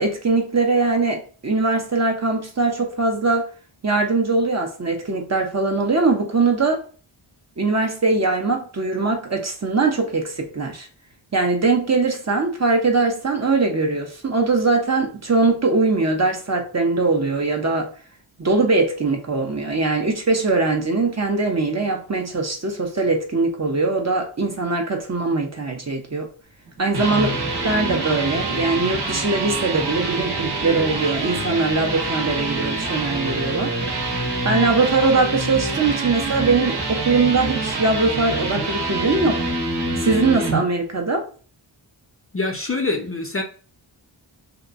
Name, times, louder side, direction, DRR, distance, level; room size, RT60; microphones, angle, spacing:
voice 1, 0.0-3.5 3.8-6.9 7.6-10.9 11.3-17.9 18.4-26.3 26.8-27.3 27.6-33.7 34.4-39.5 40.0-41.3, right 3 dB, 35° right, 0.6 m, -21 dB
sound 1, 26.7-40.6, right 2 dB, 55° right, 0.9 m, -26 dB
voice 2, 42.3-43.4, left 3 dB, 30° left, 0.5 m, -25 dB
2.8 x 2.4 x 2.4 m
wide cardioid pair, 75°, 47 cm